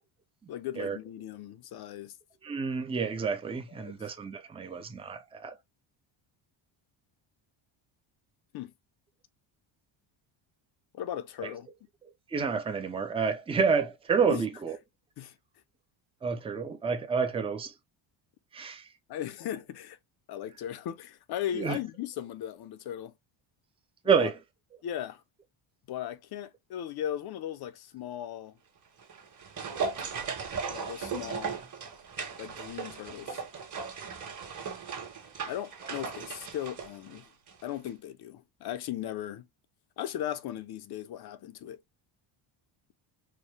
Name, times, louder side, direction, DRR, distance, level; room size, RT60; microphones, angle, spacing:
voice 1, 0.5-2.1 3.7-4.1 8.5-8.7 10.9-11.7 14.3-14.4 15.2-15.4 19.1-20.0 20.3-23.1 24.2-24.3 24.8-25.2 25.9-28.6 30.7-31.6 32.4-33.4 35.5-37.3 37.6-39.5 40.0-41.8, left 11 dB, 50° left, 0.6 m, -37 dB
voice 2, 2.4-5.5 12.3-14.8 16.2-17.7 18.5-18.9 21.5-21.8 24.0-24.4, right 5 dB, 10° right, 0.5 m, -29 dB
sound 1, 29.0-37.6 37.9-38.0, right 5 dB, 40° right, 1.4 m, -37 dB
4.5 x 2.2 x 3.3 m
cardioid pair, 135°, 48 cm